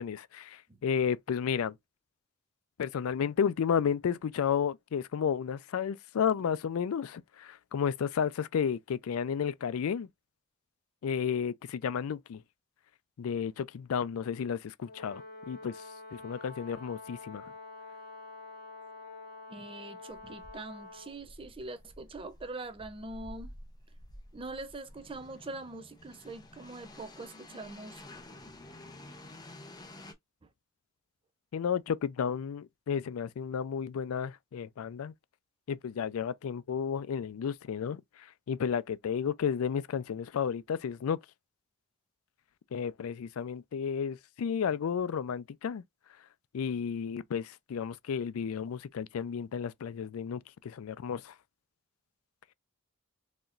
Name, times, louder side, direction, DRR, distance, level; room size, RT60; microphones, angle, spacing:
voice 1, 0.0-1.7 2.8-10.1 11.0-12.4 13.2-15.8 16.1-17.5 31.5-35.1 35.7-38.0 38.5-41.2 42.7-45.8 46.5-51.3, left 7 dB, 80° left, 0.4 m, -32 dB
Brass instrument, 14.8-21.2, left 3 dB, 45° left, 2.3 m, -47 dB
voice 2, 19.5-23.5 24.3-28.0, right 2 dB, 25° right, 0.5 m, -43 dB
sound 1, 20.1-30.1, left 1 dB, 20° left, 0.8 m, -51 dB
4.0 x 2.9 x 2.5 m
head